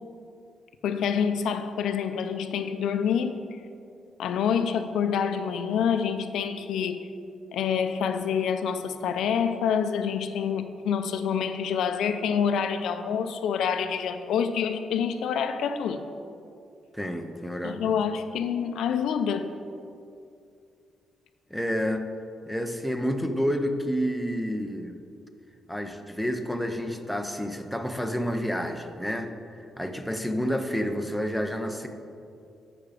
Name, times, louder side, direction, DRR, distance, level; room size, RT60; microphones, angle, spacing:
voice 1, 0.8-3.4 4.2-7.1 7.5-16.0 17.6-19.6, left 7 dB, 80° left, 9 dB, 0.5 m, -27 dB
voice 2, 16.9-17.9 21.5-22.1 22.5-24.9 25.7-31.9, equal, ahead, 5 dB, 0.4 m, -29 dB
8.7 x 5.8 x 4.8 m, 2.5 s
cardioid pair, 180°, 0 cm